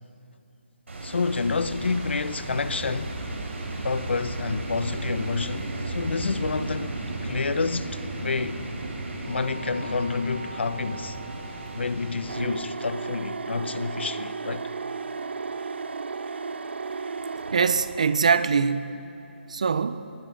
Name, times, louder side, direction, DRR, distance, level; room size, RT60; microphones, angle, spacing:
sound 1, 0.9-12.4, right 2 dB, 90° right, 5.4 m, -34 dB
voice 1, 1.0-3.2 3.8-6.9 7.2-8.6 9.3-11.2 11.7-14.7, left 4 dB, 65° left, 0.8 m, -29 dB
sound 2, 12.3-18.2, right 4 dB, 60° right, 0.8 m, -34 dB
voice 2, 17.5-19.0 19.5-20.0, right 5 dB, 35° right, 0.6 m, -23 dB
25.0 x 21.0 x 5.1 m
hypercardioid pair, 180°, 7 cm